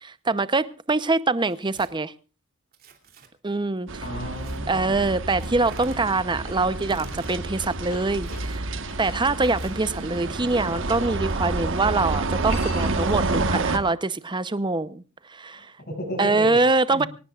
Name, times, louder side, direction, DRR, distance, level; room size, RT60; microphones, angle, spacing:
voice 1, 0.0-2.1 3.4-3.9 4.7-8.6 9.0-15.0 15.3-15.7 16.2-17.1, right 3 dB, 20° right, 0.7 m, -24 dB
Tearing, 1.4-1.9 2.7-3.3 4.4-4.6 5.4-6.0 6.8-7.4 8.2-8.6 9.4-9.9, right 3 dB, 45° right, 3.0 m, -47 dB
sound 1, 3.9-13.8, right 3 dB, 60° right, 1.4 m, -29 dB
voice 2, 4.0-5.1 15.5-16.6 16.9-17.1, equal, 50° left, 6.8 m, -34 dB
sound 2, 6.2-11.2 12.2-13.1, left 4 dB, 70° left, 3.3 m, -47 dB
24.5 x 18.5 x 2.4 m
head